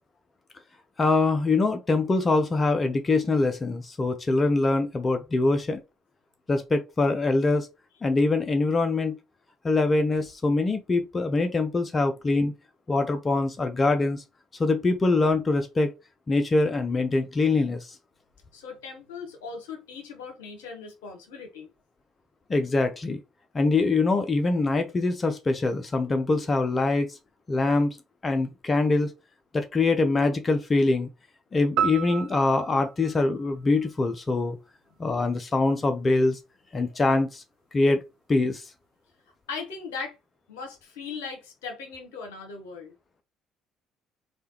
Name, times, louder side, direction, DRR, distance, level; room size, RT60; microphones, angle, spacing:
voice 1, 1.0-5.8 6.5-7.7 8.0-9.2 9.6-12.5 12.9-14.2 14.6-15.9 16.3-18.0 22.5-23.2 23.5-27.2 27.5-28.0 28.2-29.1 29.5-31.1 31.5-34.6 35.0-36.4 36.7-37.4 37.7-38.0 38.3-38.7, left 3 dB, 30° left, 0.4 m, -24 dB
voice 2, 18.5-21.7 39.5-40.2 40.5-42.9, left 5 dB, 75° left, 0.8 m, -38 dB
sound 1, 31.8-34.2, right 9 dB, 65° right, 0.3 m, -32 dB
3.2 x 2.2 x 2.8 m
figure-of-eight pair, 50°, 0 cm